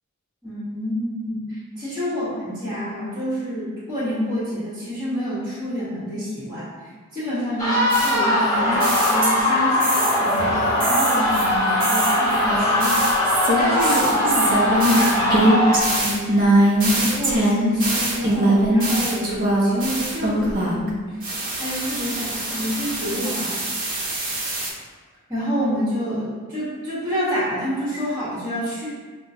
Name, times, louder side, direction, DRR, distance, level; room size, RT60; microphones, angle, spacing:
voice 1, 0.4-12.8 13.5-15.5 15.9-16.5 16.9-23.6 25.3-28.9, equal, 20° right, -10 dB, 1.2 m, -28 dB
sound 1, 7.6-15.8, left 1 dB, 15° left, 1.2 m, -20 dB
sound 2, 7.9-9.5 9.8-10.4 10.8-20.9 21.2-24.7, right 1 dB, 40° right, 0.6 m, -22 dB
5.3 x 2.2 x 2.7 m, 1.4 s
head